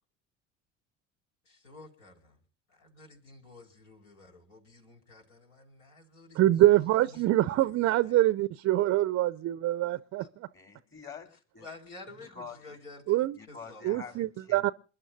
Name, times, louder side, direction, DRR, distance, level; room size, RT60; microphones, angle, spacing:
voice 1, 1.4-2.4 2.7-8.2 9.0-9.1 9.8-10.3 11.6-14.2, left 2 dB, 70° left, 4.7 m, -52 dB
voice 2, 6.4-10.2 13.1-13.4 13.8-14.7, right 15 dB, 40° right, 0.6 m, -25 dB
voice 3, 10.5-11.7 12.2-12.8 13.3-14.7, left 5 dB, 30° left, 3.5 m, -47 dB
28.5 x 12.0 x 2.7 m
hypercardioid pair, 70°, 36 cm